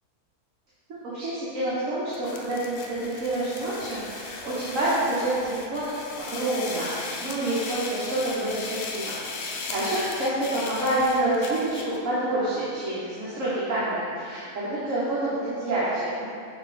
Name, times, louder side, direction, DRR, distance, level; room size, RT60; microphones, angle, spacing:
voice 1, 1.1-5.9 6.1-9.2 9.7-16.3, right 1 dB, 60° right, -9 dB, 1.4 m, -27 dB
sound 1, 2.1-12.0, left 3 dB, 60° left, 0.7 m, -37 dB
6.2 x 4.0 x 4.1 m, 2.4 s
omnidirectional pair, 1.6 m